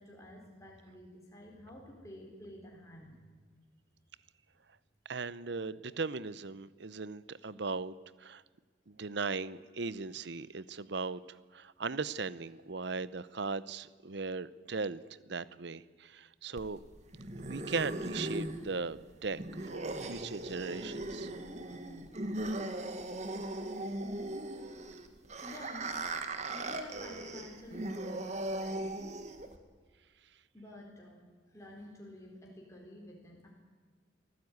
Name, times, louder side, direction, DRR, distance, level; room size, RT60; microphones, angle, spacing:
voice 1, 0.0-3.2 25.4-25.9 26.5-29.0 30.5-31.2 31.5-33.5, left 1 dB, 15° left, -2 dB, 4.4 m, -50 dB
voice 2, 5.0-8.4 8.9-16.8 17.4-21.3, right 4 dB, 60° right, 18 dB, 0.8 m, -38 dB
sound 1, 16.6-29.6, right 1 dB, 35° right, 1.8 m, -39 dB
23.5 x 15.0 x 9.6 m, 1.5 s
head